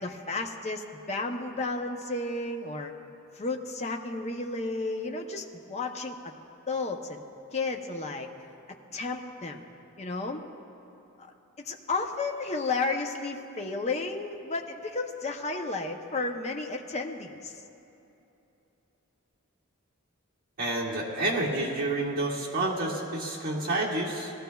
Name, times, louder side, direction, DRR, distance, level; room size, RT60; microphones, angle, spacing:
voice 1, 0.0-2.9 3.3-6.3 6.7-7.2 7.5-8.3 8.9-9.6 10.0-10.4 11.6-17.5, left 3 dB, 30° left, 3 dB, 0.7 m, -32 dB
voice 2, 20.6-24.3, right 2 dB, 45° right, -5 dB, 2.1 m, -29 dB
19.0 x 14.0 x 2.3 m, 2.9 s
head